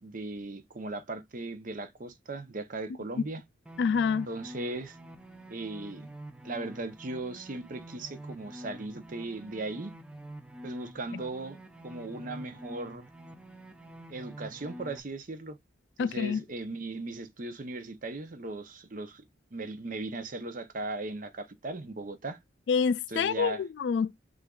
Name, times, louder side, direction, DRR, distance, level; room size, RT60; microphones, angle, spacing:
voice 1, 0.0-3.4 4.3-5.0 5.5-6.1 6.4-9.9 10.6-13.1 14.1-15.6 16.0-19.2 19.5-22.4 23.1-23.6, right 2 dB, 45° right, 0.7 m, -38 dB
sound 1, 3.7-15.0, right 1 dB, 5° right, 0.5 m, -47 dB
voice 2, 3.8-4.3 11.1-11.2 16.0-16.4 22.7-24.1, left 6 dB, 65° left, 0.3 m, -27 dB
6.3 x 2.5 x 2.3 m
head